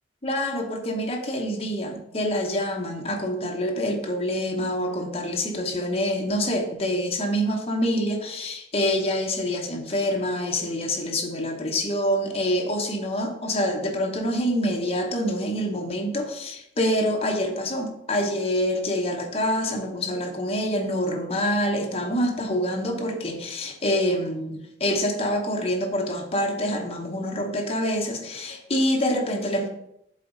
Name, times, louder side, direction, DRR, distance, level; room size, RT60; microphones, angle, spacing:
voice 1, 0.2-29.7, equal, 35° left, 2 dB, 0.9 m, -26 dB
7.5 x 4.0 x 3.8 m, 0.77 s
head